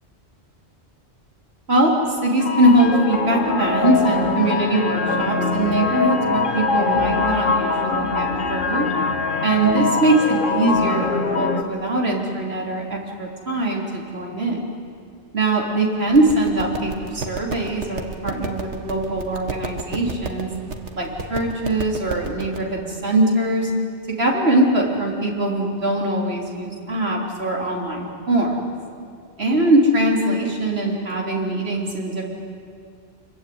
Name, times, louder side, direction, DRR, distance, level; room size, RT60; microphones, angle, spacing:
voice 1, 1.7-8.9 9.4-14.6 15.3-20.5 21.0-23.7 24.1-28.6 29.4-32.2, right 1 dB, 60° right, -1 dB, 3.9 m, -21 dB
sound 1, 2.4-11.6, left 4 dB, 45° left, 1.6 m, -23 dB
sound 2, 16.1-22.6, right 3 dB, 80° right, 2.0 m, -33 dB
26.0 x 23.5 x 9.4 m, 2.3 s
omnidirectional pair, 1.2 m